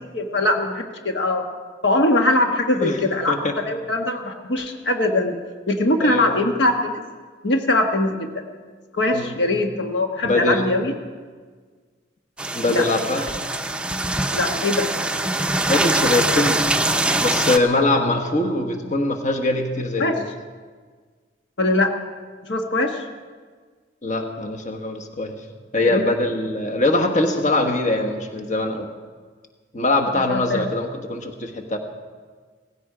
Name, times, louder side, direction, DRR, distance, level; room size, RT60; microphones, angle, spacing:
voice 1, 0.1-1.4 1.8-3.4 3.6-5.4 5.7-6.9 7.4-8.4 8.9-10.9 12.6-12.8 13.2-13.3 14.3-15.0 20.0-20.1 21.6-21.9 22.5-23.0 25.8-26.0 30.3-30.7, left 2 dB, 65° left, 4 dB, 1.3 m, -21 dB
voice 2, 2.8-3.5 6.0-6.4 9.1-9.3 10.2-10.6 12.5-13.3 15.7-16.6 17.2-20.2 24.0-25.4 25.7-28.9 29.7-31.8, left 2 dB, 40° left, 3 dB, 1.4 m, -22 dB
sound 1, 12.4-17.6, right 2 dB, 5° right, 0.6 m, -23 dB
17.5 x 16.0 x 5.0 m, 1.5 s
head